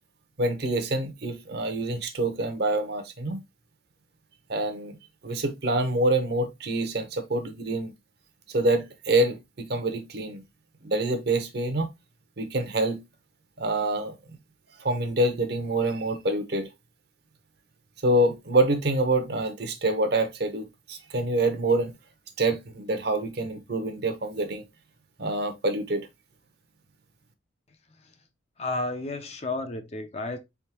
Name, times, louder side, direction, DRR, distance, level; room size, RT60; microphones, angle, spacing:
voice 1, 0.4-3.4 4.5-4.9 5.2-7.9 8.5-10.4 10.8-11.9 12.4-13.0 13.6-14.1 14.8-16.7 18.0-21.9 22.4-24.6 25.2-26.0, right 2 dB, 55° right, 0.8 m, -26 dB
voice 2, 28.6-30.4, left 2 dB, 30° left, 0.5 m, -32 dB
4.1 x 3.5 x 2.8 m
head